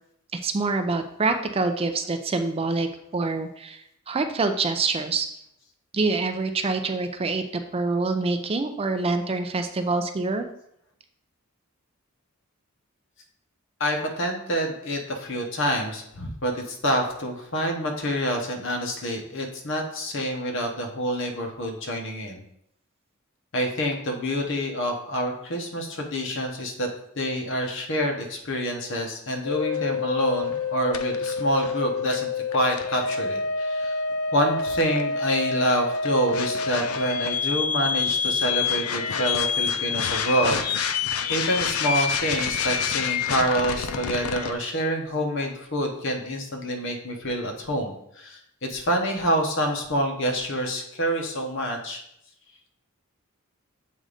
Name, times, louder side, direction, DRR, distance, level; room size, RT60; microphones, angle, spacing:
voice 1, 0.3-3.8 4.1-5.3 5.9-10.5, right 3 dB, 25° right, 7 dB, 0.4 m, -26 dB
voice 2, 13.8-22.4 23.5-26.9 27.1-34.0 34.3-52.0, equal, 60° left, 2 dB, 1.0 m, -27 dB
sound 1, 29.5-44.5, left 5 dB, 85° left, 0.5 m, -27 dB
7.5 x 2.6 x 4.9 m, 0.74 s
head